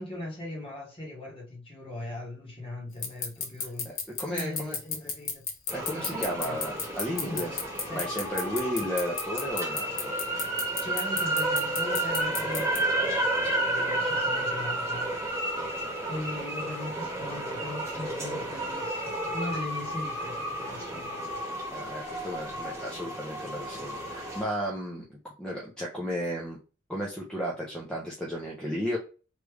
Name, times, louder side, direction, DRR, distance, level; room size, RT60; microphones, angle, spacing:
voice 1, 0.0-3.9 4.3-5.4 6.1-6.8 7.2-8.1 8.6-8.9 10.8-15.1 16.1-21.3, left 1 dB, 25° left, 1.3 m, -39 dB
sound 1, 3.0-12.8, left 6 dB, 70° left, 0.9 m, -30 dB
voice 2, 3.8-4.8 5.7-7.6 7.9-10.1 21.7-26.6 26.9-29.0, equal, 5° left, 0.5 m, -34 dB
sound 2, 5.7-24.4, right 1 dB, 15° right, 1.1 m, -31 dB
3.1 x 2.4 x 3.3 m
head